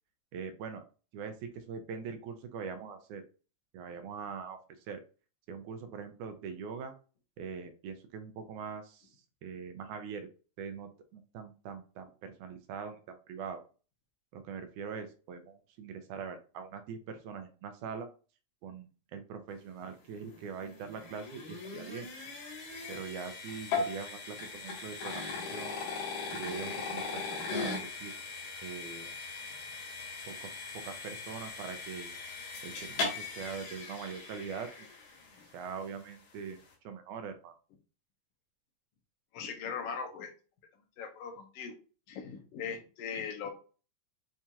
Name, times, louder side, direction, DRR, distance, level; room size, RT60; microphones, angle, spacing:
voice 1, 0.3-0.8 1.1-3.2 3.7-4.6 4.9-5.0 5.5-6.9 7.4-9.2 9.4-10.3 10.6-13.6 14.3-18.1 18.6-22.1 22.9-25.8 26.3-28.1 28.6-29.1 30.3-32.1 32.6-34.9 35.5-36.6 36.8-37.5, right 6 dB, 80° right, 7 dB, 2.0 m, -42 dB
sound 1, 20.2-35.4, left 4 dB, 90° left, 3.3 m, -39 dB
voice 2, 39.3-40.3 41.0-41.7 42.1-43.5, left 6 dB, 70° left, 3 dB, 1.5 m, -39 dB
7.3 x 2.8 x 2.4 m, 0.36 s
omnidirectional pair, 3.6 m